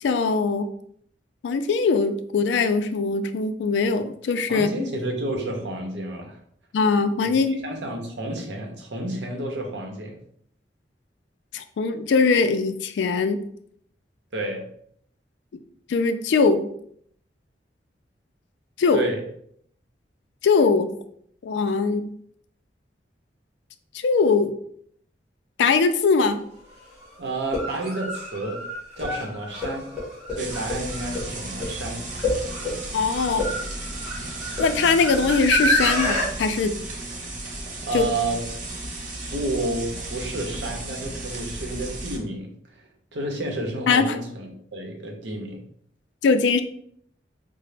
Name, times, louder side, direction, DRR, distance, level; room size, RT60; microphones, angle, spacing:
voice 1, 0.0-0.7 1.4-4.7 6.7-7.6 11.5-13.4 15.9-16.7 18.8-19.0 20.4-20.9 21.4-22.1 23.9-24.5 25.6-26.4 32.9-33.5 34.6-36.8 37.9-38.0 43.9-44.2 46.2-46.6, left 4 dB, 80° left, 9 dB, 0.3 m, -21 dB
voice 2, 4.5-6.4 7.3-10.2 14.3-14.7 18.9-19.2 27.2-28.6 29.0-29.9 30.3-32.1 37.9-38.4 39.3-42.5 43.1-45.6, right 1 dB, 80° right, 2 dB, 0.7 m, -30 dB
sound 1, 26.2-26.3 27.4-36.3, equal, 5° right, 1.4 m, -28 dB
sound 2, 30.4-42.2, right 2 dB, 45° right, 0.7 m, -34 dB
3.7 x 2.0 x 3.2 m, 0.66 s
head